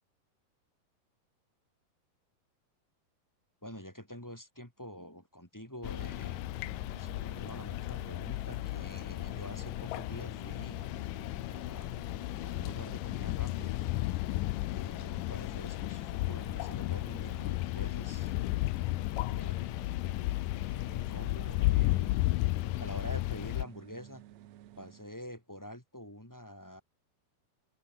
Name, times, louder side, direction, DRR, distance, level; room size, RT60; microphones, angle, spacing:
voice 1, 3.6-6.5 7.0-10.8 11.5-12.0 12.4-13.9 14.6-18.3 19.2-19.9 20.6-22.1 22.8-24.2 24.8-26.8, equal, 5° left, 3.1 m, -47 dB
sound 1, 5.8-23.6, left 19 dB, 85° left, 1.9 m, -34 dB
sound 2, 5.8-25.1, right 13 dB, 85° right, 1.5 m, -53 dB
sound 3, 17.4-22.3, right 4 dB, 30° right, 2.0 m, -60 dB
omnidirectional pair, 4.6 m